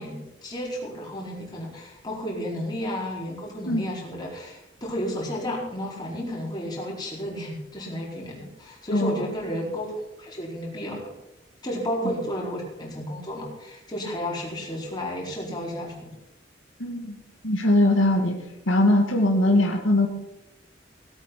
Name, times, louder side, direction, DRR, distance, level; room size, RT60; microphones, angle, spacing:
voice 1, 0.0-11.0 11.6-16.2, equal, 20° left, -4 dB, 4.5 m, -32 dB
voice 2, 16.8-17.2 17.4-18.3 18.7-20.1, left 1 dB, 80° left, 1 dB, 2.1 m, -20 dB
17.5 x 8.7 x 6.0 m, 0.91 s
head